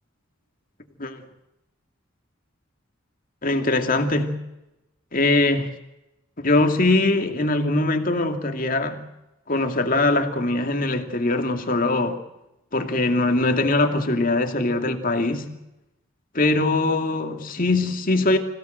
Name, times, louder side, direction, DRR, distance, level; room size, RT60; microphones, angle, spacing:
voice 1, 3.4-4.4 5.1-5.7 6.4-9.0 9.5-12.2 12.7-15.5 16.3-18.4, left 2 dB, 40° left, 6 dB, 2.4 m, -22 dB
26.0 x 17.0 x 8.0 m, 0.92 s
head